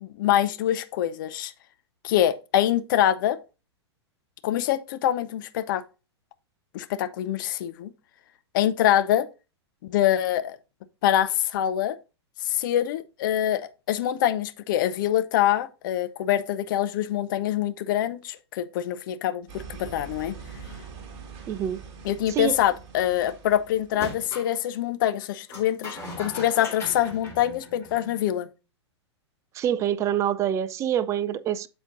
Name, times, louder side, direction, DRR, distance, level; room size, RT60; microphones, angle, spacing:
voice 1, 0.0-1.5 2.0-3.4 4.4-5.8 6.7-7.9 8.5-9.3 9.9-10.6 11.0-12.0 12.4-20.4 22.0-28.5, left 11 dB, 45° left, 0.7 m, -25 dB
sound 1, 19.5-24.3, right 5 dB, 40° right, 1.9 m, -43 dB
voice 2, 21.5-21.8 22.3-22.6 29.5-31.7, right 10 dB, 20° right, 0.4 m, -26 dB
sound 2, 23.9-24.5 25.5-28.2, left 1 dB, 20° left, 3.3 m, -39 dB
12.5 x 4.4 x 2.6 m
figure-of-eight pair, 105°, 15 cm